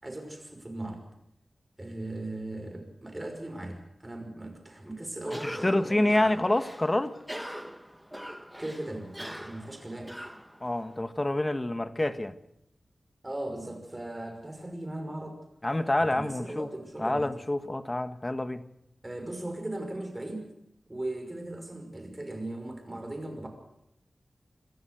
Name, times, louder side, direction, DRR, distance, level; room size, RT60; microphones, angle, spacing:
voice 1, 0.0-1.0 1.8-6.3 8.6-10.1 13.2-15.4 16.1-17.3 19.0-20.5 20.9-23.5, right 1 dB, 20° right, 5.8 m, -38 dB
Cough, 5.2-11.0, equal, 5° right, 1.2 m, -42 dB
voice 2, 5.4-7.2 10.6-12.4 15.6-16.7 17.0-18.6, left 1 dB, 20° left, 1.4 m, -27 dB
26.0 x 14.0 x 8.1 m
wide cardioid pair, 100°, 0 cm